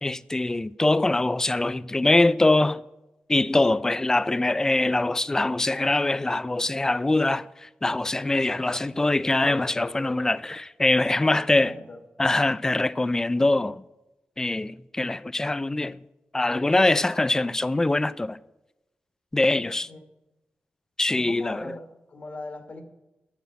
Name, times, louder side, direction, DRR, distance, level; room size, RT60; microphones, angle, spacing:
voice 1, 0.0-2.8 3.3-11.7 12.2-13.8 14.4-16.0 16.3-18.4 19.3-19.9 21.0-21.7, left 2 dB, 15° left, 0.3 m, -23 dB
voice 2, 11.1-12.0 19.5-20.0 21.1-22.8, left 2 dB, 45° left, 1.4 m, -41 dB
10.0 x 7.2 x 8.3 m
wide cardioid pair, 130°, 4 cm